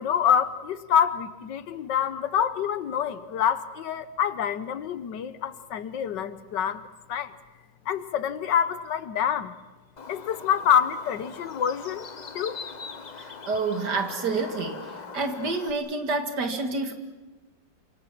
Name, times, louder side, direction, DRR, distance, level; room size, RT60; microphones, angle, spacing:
voice 1, 0.0-7.3 7.9-9.5 10.1-12.1 12.4-12.6, left 8 dB, 75° left, 13 dB, 1.6 m, -26 dB
Bird, 10.0-15.7, left 5 dB, 35° left, 0.7 m, -41 dB
voice 2, 13.2-16.9, right 3 dB, 65° right, 6 dB, 2.5 m, -28 dB
27.5 x 25.5 x 6.1 m, 1.2 s
omnidirectional pair, 2.0 m